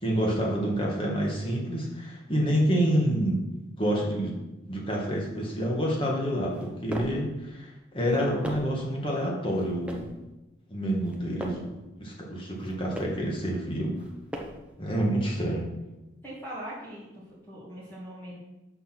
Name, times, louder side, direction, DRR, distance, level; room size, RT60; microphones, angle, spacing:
voice 1, 0.0-3.4 3.8-4.3 4.7-10.1 10.7-11.7 12.0-13.9 14.8-15.7, equal, 30° left, -2 dB, 2.0 m, -28 dB
sound 1, 6.5-7.3 8.0-8.8 9.5-10.2 10.9-11.7 12.5-13.3 13.9-14.7, equal, 5° right, 0.9 m, -40 dB
voice 2, 16.2-18.4, equal, 10° left, -9 dB, 2.3 m, -41 dB
7.0 x 6.6 x 6.2 m, 1.0 s
head